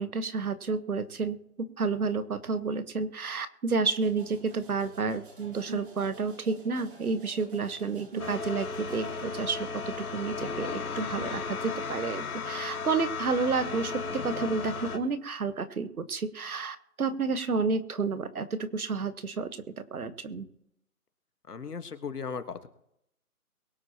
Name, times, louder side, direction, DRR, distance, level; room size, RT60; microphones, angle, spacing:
voice 1, 0.0-19.5 19.9-20.5, right 4 dB, 70° right, 12 dB, 1.4 m, -31 dB
sound 1, 4.0-9.2, right 5 dB, 35° right, 2.1 m, -47 dB
sound 2, 8.2-15.0, left 4 dB, 70° left, 2.2 m, -35 dB
voice 2, 21.5-22.7, left 5 dB, 90° left, 9 dB, 1.7 m, -37 dB
22.5 x 8.6 x 3.0 m, 0.78 s
hypercardioid pair, 170°, 45 cm